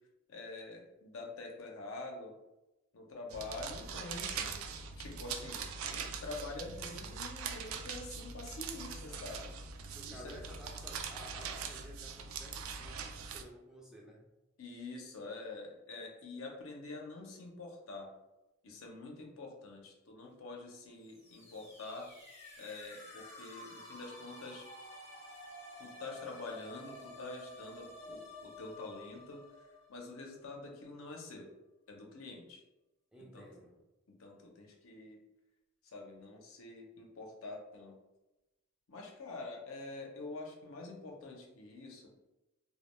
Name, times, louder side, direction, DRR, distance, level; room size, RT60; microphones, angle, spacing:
voice 1, 0.3-2.3 2.9-9.5 10.1-10.3 14.6-18.1 18.6-22.1 22.6-24.6 25.8-29.4 29.9-31.5 31.9-32.6 33.2-33.5 34.1-35.2 35.8-38.0 38.9-42.1, left 3 dB, 80° left, 0 dB, 0.6 m, -46 dB
sound 1, 3.3-13.4, right 6 dB, 85° right, 0.3 m, -42 dB
voice 2, 9.9-14.3 33.1-33.8, equal, 5° right, -2 dB, 0.3 m, -53 dB
sound 2, 21.0-30.7, left 1 dB, 30° left, 0.7 m, -52 dB
2.2 x 2.2 x 3.0 m, 1.0 s
head